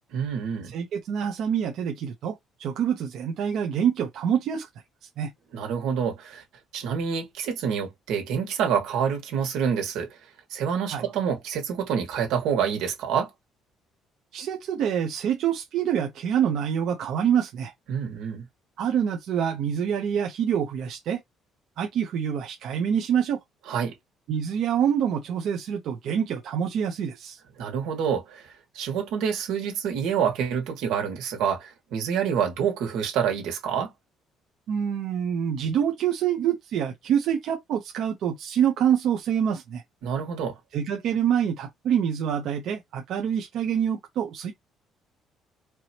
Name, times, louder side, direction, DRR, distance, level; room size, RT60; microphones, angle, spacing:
voice 1, 0.1-0.7 5.5-6.4 6.7-10.2 10.5-13.3 17.9-18.5 23.7-23.9 27.6-33.9 40.0-40.6, right 7 dB, 85° right, 1.9 m, -27 dB
voice 2, 0.7-4.7 5.2-5.3 10.9-11.0 14.3-17.7 18.8-21.2 21.8-23.4 24.3-27.4 34.7-39.8 40.7-44.5, right 8 dB, 60° right, 0.8 m, -26 dB
4.7 x 2.9 x 2.9 m
cardioid pair, 155°, 0 cm